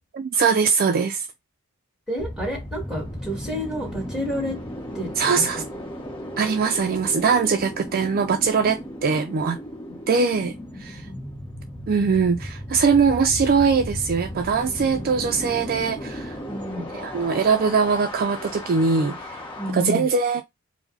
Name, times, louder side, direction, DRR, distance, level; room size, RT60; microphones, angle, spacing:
voice 1, 0.1-1.3 5.2-5.6 6.4-9.6 10.1-11.0 11.9-16.4 16.9-19.4 19.7-20.4, right 5 dB, 45° right, 0.4 m, -21 dB
voice 2, 2.1-4.6 4.9-5.6 9.9-10.0 11.0-11.2 16.5-16.9 19.6-20.1, equal, 5° right, 2.2 m, -30 dB
sound 1, 2.2-19.7, left 1 dB, 25° left, 1.2 m, -35 dB
4.7 x 2.1 x 3.9 m
head